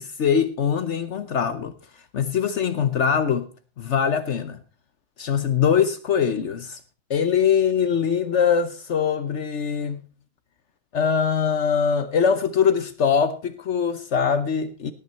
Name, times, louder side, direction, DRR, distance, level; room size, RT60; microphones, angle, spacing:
voice 1, 0.0-1.7 2.1-3.5 3.8-4.6 5.2-6.8 7.1-10.0 10.9-14.9, left 7 dB, 65° left, 1.2 m, -22 dB
17.5 x 9.4 x 4.3 m
omnidirectional pair, 1.3 m